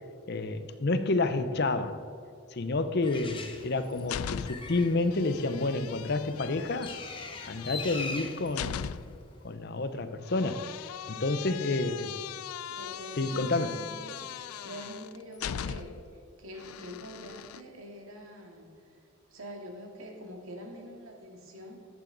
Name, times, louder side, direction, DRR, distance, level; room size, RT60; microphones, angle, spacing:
voice 1, 0.3-2.0 2.5-7.0 7.4-8.9 9.4-10.7 11.1-12.1 13.2-13.8, left 2 dB, 50° left, 0.6 m, -29 dB
Bird, 3.0-9.5, left 4 dB, 25° left, 0.9 m, -43 dB
sound 1, 3.7-4.8 5.1-9.3 10.3-16.1 16.6-17.6, left 9 dB, 85° left, 0.4 m, -40 dB
voice 2, 11.6-11.9 12.7-19.0 19.3-21.8, equal, 75° right, 2.0 m, -45 dB
14.0 x 9.1 x 3.9 m
head